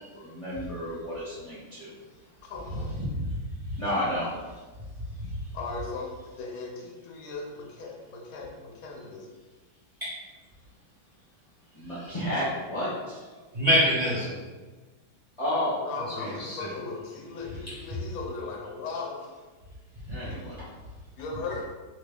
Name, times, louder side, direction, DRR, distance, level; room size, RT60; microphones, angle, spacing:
voice 1, 0.1-1.9 3.8-4.3 11.7-13.2 15.4-15.8 16.2-16.3 20.1-20.6, left 1 dB, 35° left, -9 dB, 0.5 m, -31 dB
voice 2, 2.4-3.0 5.5-9.3 15.8-19.3 21.2-21.6, left 3 dB, 65° left, -1 dB, 0.9 m, -37 dB
voice 3, 3.0-3.4 3.7-3.8 10.0-10.1 11.9-12.1 13.5-14.4 16.2-16.7, equal, 30° right, -10 dB, 0.7 m, -26 dB
2.9 x 2.7 x 3.4 m, 1.3 s
omnidirectional pair, 2.1 m